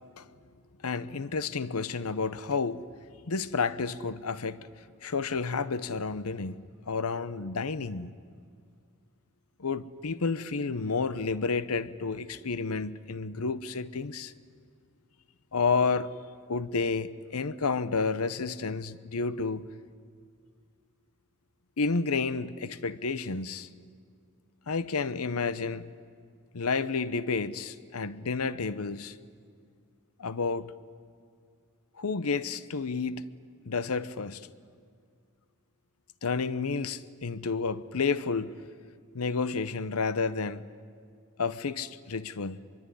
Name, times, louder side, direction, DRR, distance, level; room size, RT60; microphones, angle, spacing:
voice 1, 0.8-2.9 3.3-4.7 5.0-6.6 6.9-8.1 9.6-14.3 15.5-16.1 16.5-19.7 21.8-23.7 24.7-25.9 26.5-29.1 30.2-30.7 32.0-33.2 33.7-34.5 36.2-38.6 39.1-40.7 41.4-42.6, left 4 dB, 85° left, 0.8 m, -30 dB
24.5 x 23.0 x 9.9 m
head